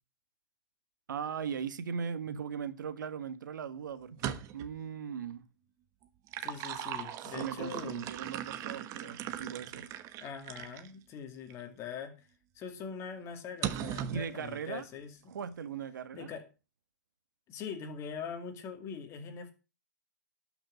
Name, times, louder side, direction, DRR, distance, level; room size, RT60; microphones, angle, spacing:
voice 1, 1.1-5.5 7.2-9.9 14.1-14.8 15.3-16.3, right 7 dB, 75° right, 1.7 m, -39 dB
sound 1, 4.1-4.8 6.0-10.9 11.5-11.6 13.6-14.3, right 11 dB, 30° right, 1.1 m, -38 dB
voice 2, 6.4-8.0 10.2-12.2 12.6-15.1 16.1-16.4 17.5-19.5, left 6 dB, 25° left, 2.3 m, -42 dB
12.0 x 6.0 x 6.4 m
hypercardioid pair, 135°, 10 cm